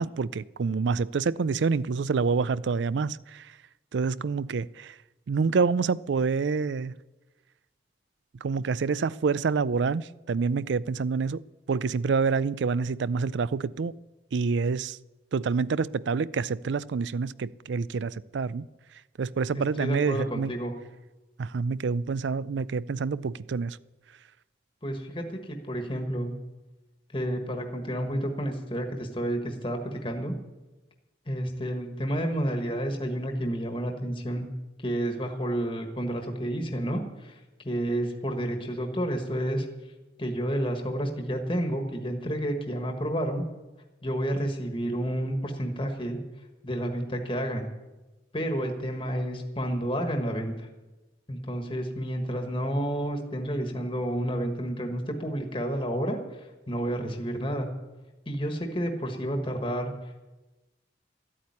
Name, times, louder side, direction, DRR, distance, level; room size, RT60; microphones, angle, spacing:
voice 1, 0.0-3.5 3.9-5.0 5.3-6.9 8.4-11.4 11.7-13.9 14.3-15.0 15.3-18.7 19.2-20.5 21.4-23.8, right 5 dB, 70° right, 0.4 m, -27 dB
voice 2, 19.5-20.7 24.8-26.3 27.1-30.3 31.3-34.5 34.8-39.7 40.2-43.4 44.0-46.2 46.6-47.7 48.3-50.7 51.3-57.7 58.3-59.9, right 1 dB, 25° left, 1.4 m, -30 dB
13.5 x 8.6 x 9.6 m
head